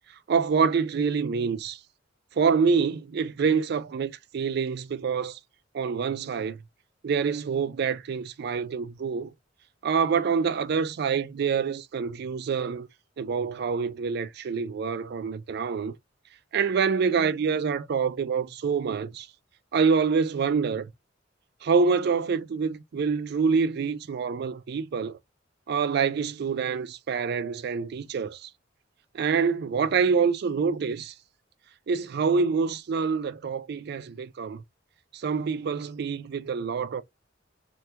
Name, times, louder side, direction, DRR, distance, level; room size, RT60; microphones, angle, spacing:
voice 1, 0.3-1.8 2.4-5.4 5.7-6.6 7.0-9.3 9.8-12.9 13.2-15.9 16.5-19.3 19.7-20.9 21.6-25.2 25.7-28.5 29.1-31.1 31.9-34.6 35.1-37.0, right 5 dB, 60° right, 0.4 m, -26 dB
3.3 x 2.3 x 2.8 m
head